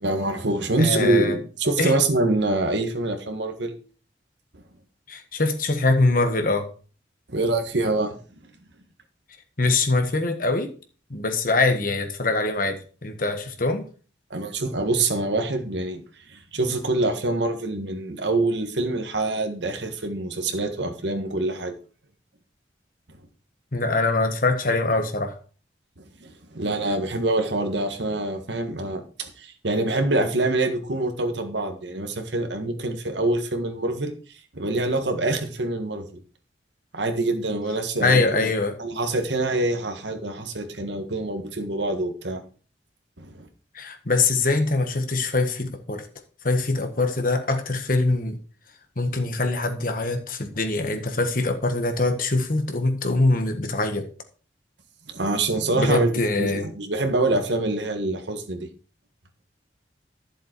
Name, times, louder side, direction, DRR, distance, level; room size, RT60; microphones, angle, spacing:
voice 1, 0.0-3.8 4.5-4.6 7.3-8.2 8.4-8.5 14.3-16.0 16.3-21.7 26.2-34.1 34.5-36.0 36.9-38.5 38.8-42.4 43.2-43.5 55.1-56.1 56.4-58.7, right 2 dB, 75° right, 1.6 m, -25 dB
voice 2, 0.8-1.4 1.8-1.9 5.1-6.7 9.6-10.7 11.1-13.9 23.7-25.4 38.0-38.8 43.7-46.1 46.4-48.4 48.9-54.1 55.7-56.7, left 3 dB, 50° left, 1.6 m, -23 dB
11.5 x 7.4 x 4.5 m
head